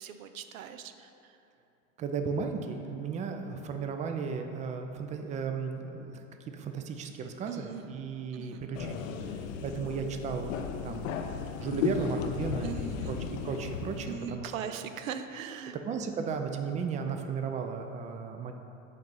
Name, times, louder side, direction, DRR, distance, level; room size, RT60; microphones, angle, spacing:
voice 1, 0.0-1.4 7.5-8.0 8.3-8.6 9.8-10.1 12.6-13.2 14.1-15.8, right 7 dB, 90° right, 9 dB, 0.5 m, -40 dB
voice 2, 2.0-6.2 6.5-10.5 10.8-11.1 11.6-14.8 15.9-18.5, right 5 dB, 20° right, 5 dB, 0.3 m, -35 dB
sound 1, 8.7-14.1, left 7 dB, 75° left, 0.6 m, -35 dB
5.3 x 3.9 x 5.4 m, 2.9 s
hypercardioid pair, 95°, 39 cm